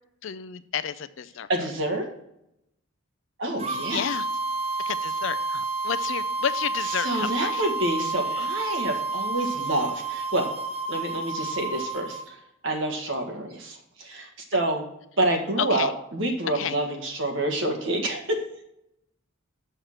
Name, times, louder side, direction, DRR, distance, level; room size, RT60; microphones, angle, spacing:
voice 1, 0.2-1.5 3.9-4.3 4.9-7.8 8.3-8.5 15.6-15.9 16.5-16.8, left 8 dB, 65° left, 13 dB, 0.5 m, -31 dB
voice 2, 1.5-2.0 3.4-4.1 6.8-10.5 10.9-12.4 12.6-14.8 15.2-18.6, right 1 dB, 70° right, 3 dB, 1.6 m, -28 dB
sound 1, 3.6-12.2, right 3 dB, 30° right, 0.8 m, -30 dB
6.5 x 6.5 x 5.8 m, 0.82 s
head